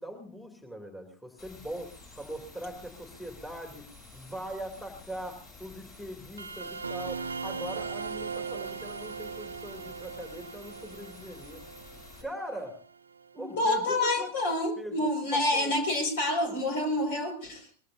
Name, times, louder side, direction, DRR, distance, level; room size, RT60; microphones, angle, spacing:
voice 1, 0.0-3.9 4.1-11.6 12.2-12.8 13.3-14.3 14.8-15.7, equal, 5° left, 4 dB, 2.6 m, -41 dB
sound 1, 1.4-12.2, left 3 dB, 40° left, 7.4 m, -51 dB
sound 2, 6.4-13.5, right 5 dB, 75° right, 0.8 m, -39 dB
voice 2, 13.4-17.7, left 1 dB, 55° left, 5 dB, 5.3 m, -28 dB
23.0 x 21.5 x 2.7 m, 0.39 s
figure-of-eight pair, 90°, 0 cm